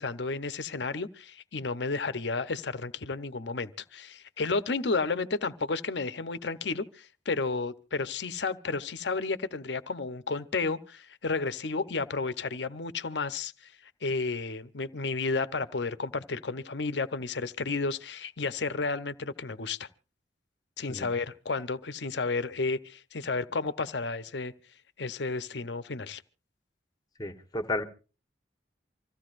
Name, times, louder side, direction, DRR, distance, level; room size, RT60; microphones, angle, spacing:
voice 1, 0.0-13.7 14.0-19.9 20.8-24.5 25.0-26.2, left 4 dB, 75° left, 0.9 m, -32 dB
voice 2, 27.2-27.8, left 2 dB, 20° left, 1.2 m, -32 dB
26.0 x 15.5 x 2.6 m
head